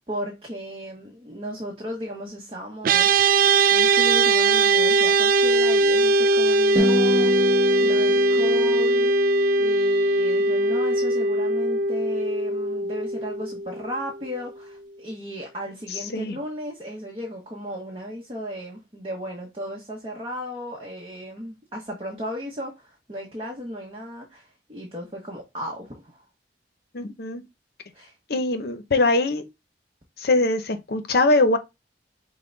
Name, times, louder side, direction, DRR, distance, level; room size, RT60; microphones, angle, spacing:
voice 1, 0.1-3.3 3.7-9.3 9.6-26.2 27.9-28.1, equal, 30° right, 0.9 m, -35 dB
sound 1, 2.8-14.3, right 2 dB, 50° right, 0.4 m, -20 dB
sound 2, 6.8-11.1, left 2 dB, 5° right, 1.5 m, -30 dB
voice 2, 26.9-27.4 28.3-29.4 30.2-31.6, left 2 dB, 60° left, 0.7 m, -22 dB
5.6 x 2.2 x 3.8 m
head